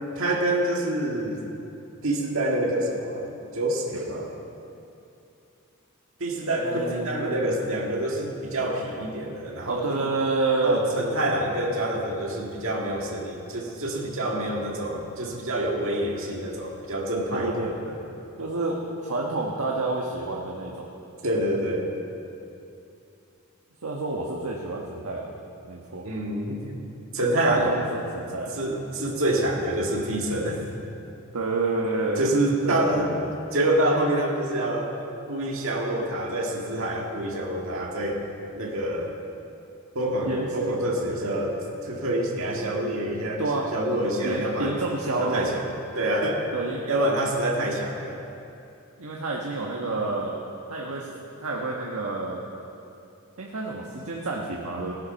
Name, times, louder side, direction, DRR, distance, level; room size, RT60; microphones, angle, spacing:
voice 1, 0.1-1.4 2.0-4.3 6.2-10.1 10.6-18.0 21.2-21.9 26.0-26.8 27.1-27.7 28.6-30.6 32.2-33.2 33.5-34.9 35.3-38.2 38.5-39.1 39.9-43.4 43.7-44.8 45.2-45.7 45.9-46.4 46.9-48.2, right 1 dB, 65° right, -1 dB, 1.8 m, -27 dB
voice 2, 6.6-7.1 9.6-10.8 17.3-17.7 18.4-20.9 23.8-25.3 25.6-26.0 27.4-28.6 31.3-32.3 32.6-33.1 40.2-40.7 43.4-43.6 44.2-45.5 46.5-46.9 49.0-50.3 50.7-51.1 51.4-52.4 53.4-54.9, right 3 dB, 80° right, -2 dB, 1.3 m, -28 dB
17.0 x 9.6 x 5.8 m, 2.8 s
head